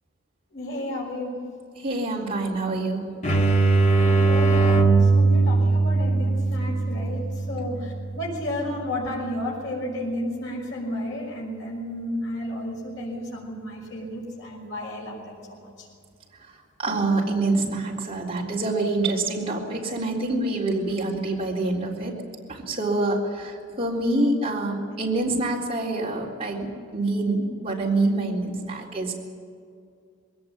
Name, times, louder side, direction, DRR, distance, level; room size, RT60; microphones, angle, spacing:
voice 1, 0.5-1.5 4.0-15.9, left 1 dB, 65° left, -4 dB, 6.0 m, -32 dB
voice 2, 1.8-3.1 16.8-22.2 22.5-29.1, right 2 dB, 30° right, -3 dB, 3.7 m, -26 dB
sound 1, 3.2-8.7, right 3 dB, 35° left, 1.9 m, -20 dB
21.5 x 17.5 x 8.8 m, 2.3 s
head